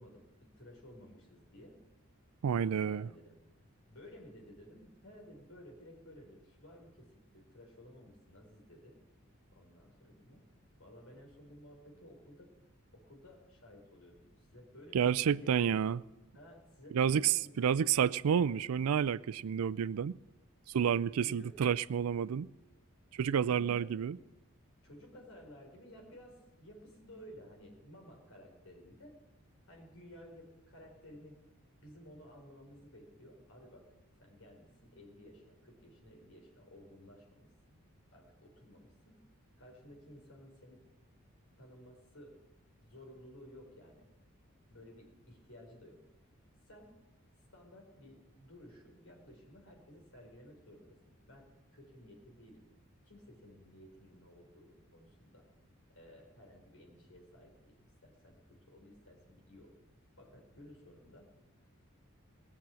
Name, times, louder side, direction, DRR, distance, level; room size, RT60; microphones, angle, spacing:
voice 1, 0.0-1.8 2.6-3.4 3.9-9.0 9.5-10.4 10.8-12.5 12.9-15.8 16.3-17.8 21.1-21.6 23.4-24.3 24.8-29.1 29.7-31.4 31.8-33.8 34.2-37.8 38.1-39.2 39.6-40.8 41.6-42.3 42.8-44.1 44.7-46.0 46.6-46.9 47.5-52.7 53.0-55.5 55.9-57.8 58.0-59.7 60.2-61.3, equal, 70° left, 4.3 m, -55 dB
voice 2, 2.4-3.1 14.9-16.0 16.9-20.1 20.7-22.5 23.1-24.2, right 8 dB, 80° right, 0.4 m, -30 dB
19.5 x 7.2 x 7.6 m
head